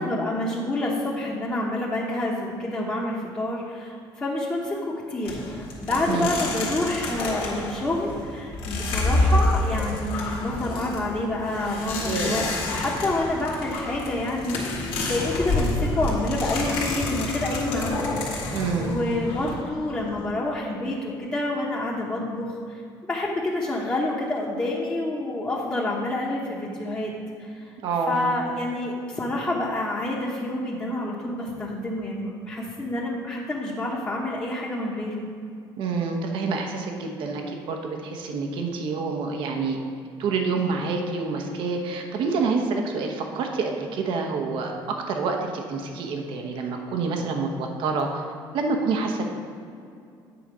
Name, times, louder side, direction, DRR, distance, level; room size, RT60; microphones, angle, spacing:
voice 1, 0.0-18.5 18.8-22.8 23.1-27.1 27.4-27.7 28.1-35.2, left 1 dB, 20° left, -5 dB, 1.2 m, -28 dB
sound 1, 5.2-20.3, left 2 dB, 85° left, 1.7 m, -28 dB
voice 2, 12.0-12.5 18.5-18.9 27.8-28.3 35.8-39.8 40.2-48.2 48.5-49.3, right 4 dB, 70° right, 3 dB, 1.0 m, -27 dB
8.8 x 4.2 x 6.1 m, 2.5 s
cardioid pair, 115°, 9 cm